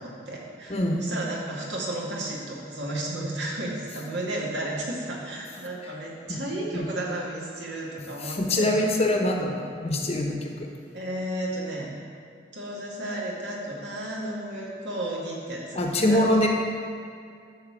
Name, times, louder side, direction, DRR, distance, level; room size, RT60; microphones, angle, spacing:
voice 1, 0.0-8.8 10.9-12.0 12.5-16.2, right 1 dB, 75° right, -4 dB, 2.2 m, -33 dB
voice 2, 8.2-10.7 15.8-16.5, left 1 dB, 35° left, 1 dB, 1.0 m, -24 dB
12.5 x 4.2 x 7.3 m, 2.3 s
head